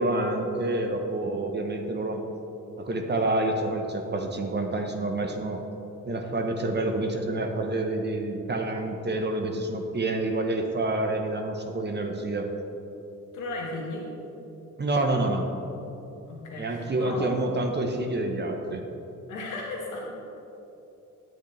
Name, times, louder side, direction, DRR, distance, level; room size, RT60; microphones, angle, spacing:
voice 1, 0.0-2.2 2.8-5.6 6.1-12.5 14.8-15.5 16.6-18.8, right 2 dB, 35° right, 4 dB, 1.0 m, -28 dB
voice 2, 13.3-14.1 16.2-17.3 19.3-20.1, left 2 dB, 80° left, -2 dB, 1.7 m, -35 dB
9.1 x 7.9 x 3.3 m, 3.0 s
cardioid pair, 70°, 30 cm